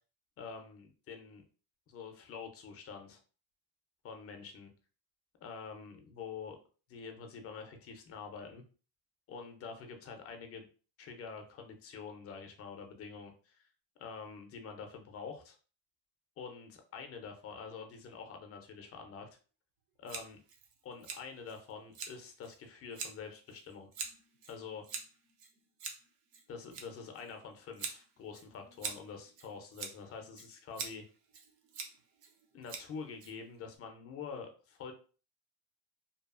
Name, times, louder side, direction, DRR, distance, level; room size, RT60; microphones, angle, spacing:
voice 1, 0.4-1.4 1.9-3.2 4.0-4.7 5.4-6.6 6.9-8.6 9.3-10.7 11.0-13.7 14.0-15.6 16.4-19.3 20.0-20.4 20.8-23.9 24.5-24.8 26.5-31.0 32.5-34.9, left 5 dB, 35° left, 4 dB, 0.4 m, -46 dB
Scissors, 20.1-33.8, right 5 dB, 70° right, 0.7 m, -46 dB
2.7 x 2.3 x 2.3 m, 0.37 s
cardioid pair, 160°, 46 cm